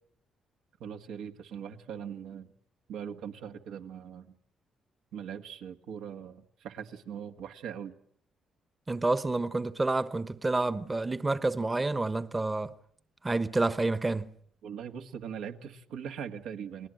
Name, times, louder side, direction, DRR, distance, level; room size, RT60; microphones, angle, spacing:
voice 1, 0.8-2.5 2.9-4.4 5.1-7.9 14.6-16.9, right 8 dB, 85° right, 1.9 m, -41 dB
voice 2, 8.9-12.7 13.2-14.3, right 2 dB, 20° right, 1.1 m, -29 dB
29.5 x 20.0 x 7.8 m
cardioid pair, 90°, 0 cm